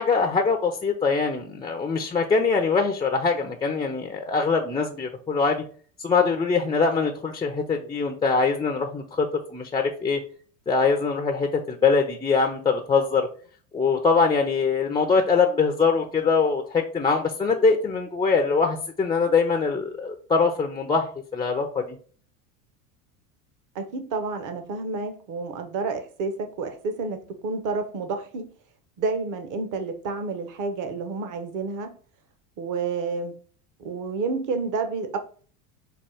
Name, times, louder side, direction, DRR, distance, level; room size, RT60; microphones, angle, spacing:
voice 1, 0.0-5.6 6.0-10.2 10.7-13.3 13.7-22.0, left 4 dB, 10° left, 0.4 m, -23 dB
voice 2, 23.7-28.5 29.0-31.9 32.6-33.3 33.8-35.2, right 4 dB, 45° right, 0.9 m, -30 dB
4.4 x 2.3 x 4.6 m
supercardioid pair, 100°, 45 cm